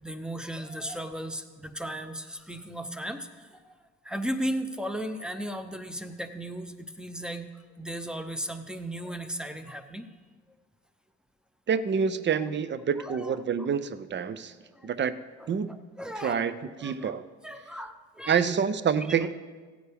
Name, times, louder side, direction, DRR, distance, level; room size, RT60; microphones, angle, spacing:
voice 1, 0.0-3.8 4.0-10.1 12.3-12.5 13.0-13.4 14.7-14.9 15.4-16.5 16.8-17.2 17.4-18.4 19.2-19.3, equal, 5° right, 8 dB, 0.7 m, -36 dB
voice 2, 11.7-14.5 14.8-15.2 15.5-15.8 16.2-17.3 18.3-19.3, right 7 dB, 40° right, 14 dB, 0.6 m, -27 dB
15.5 x 9.1 x 3.5 m, 1.4 s
cardioid pair, 90°, 30 cm